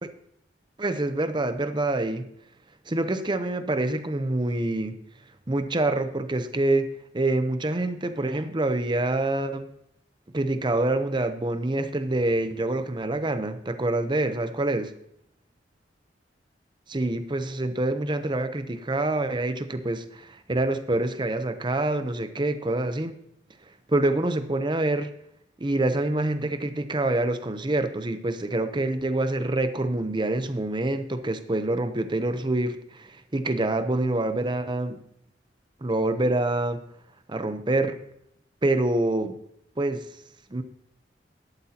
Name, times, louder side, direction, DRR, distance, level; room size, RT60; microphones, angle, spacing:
voice 1, 0.8-2.3 2.9-4.9 5.5-6.9 7.1-9.7 10.3-14.9 16.9-23.2 23.9-25.1 25.6-35.0 35.8-36.8 37.3-38.0 38.6-39.4 39.8-40.0 40.5-40.6, right 2 dB, 25° right, 10 dB, 0.7 m, -26 dB
12.0 x 12.0 x 2.9 m, 0.75 s
head